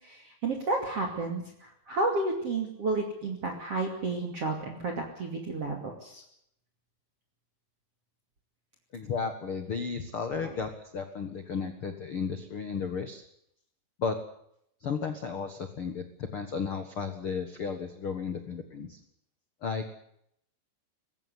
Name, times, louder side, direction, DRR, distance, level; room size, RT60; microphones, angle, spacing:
voice 1, 0.0-6.2 10.4-10.6, right 3 dB, 40° right, 2 dB, 3.1 m, -32 dB
voice 2, 8.9-13.2 14.0-14.2 14.8-19.0 19.6-19.8, left 5 dB, 75° left, 8 dB, 1.2 m, -34 dB
21.0 x 16.0 x 9.5 m, 0.73 s
omnidirectional pair, 5.1 m